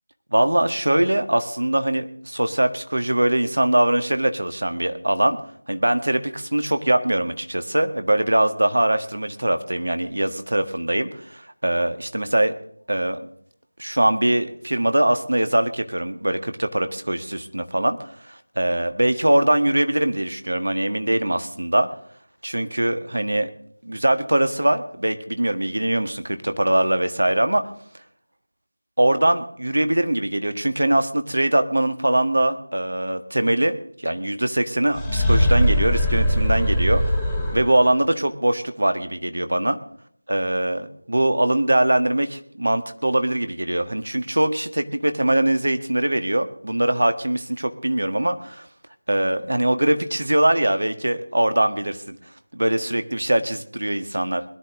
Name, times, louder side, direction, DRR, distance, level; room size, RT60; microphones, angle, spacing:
voice 1, 0.3-5.4 5.7-12.5 12.9-13.2 13.8-21.9 22.4-23.5 23.8-27.7 29.0-37.1 37.5-39.8 40.3-48.7 49.1-52.2 52.5-54.4, right 1 dB, 65° right, 9 dB, 1.6 m, -22 dB
sound 1, 34.9-38.0, equal, ahead, 1.3 m, -20 dB
21.5 x 11.0 x 3.7 m, 0.63 s
figure-of-eight pair, 170°, 0 cm